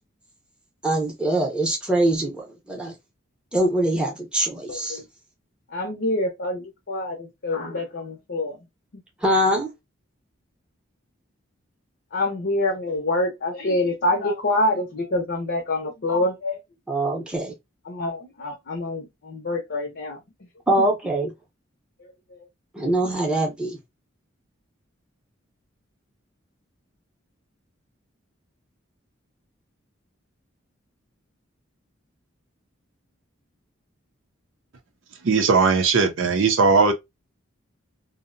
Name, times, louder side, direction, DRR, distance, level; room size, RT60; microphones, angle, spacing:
voice 1, 0.8-2.9 3.5-5.0 9.2-9.7 16.9-17.5 20.7-21.3 22.7-23.8, right 1 dB, 5° right, 0.7 m, -23 dB
voice 2, 4.7-5.0 5.7-8.6 12.1-16.6 17.9-20.2 22.3-22.4, left 2 dB, 55° left, 0.6 m, -26 dB
voice 3, 35.2-36.9, right 4 dB, 65° right, 0.5 m, -18 dB
2.6 x 2.0 x 2.5 m
head